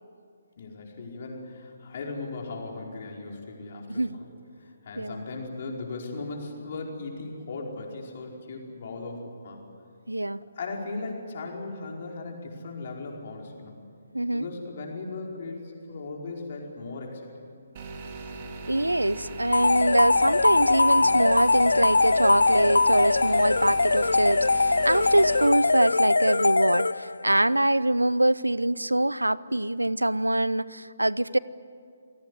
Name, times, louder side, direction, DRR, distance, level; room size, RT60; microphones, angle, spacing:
voice 1, 0.6-4.3 4.6-9.6 10.5-13.8 14.3-17.3 23.4-23.7, left 3 dB, 45° left, 0 dB, 4.9 m, -37 dB
voice 2, 3.9-4.2 5.0-5.2 10.1-10.4 14.1-14.4 18.7-31.4, right 1 dB, 85° right, 20 dB, 0.7 m, -24 dB
sound 1, 17.7-25.5, right 2 dB, 35° right, 3.7 m, -39 dB
sound 2, 19.5-27.3, left 3 dB, 70° left, 0.5 m, -22 dB
27.5 x 18.5 x 9.8 m, 2.3 s
figure-of-eight pair, 140°, 0 cm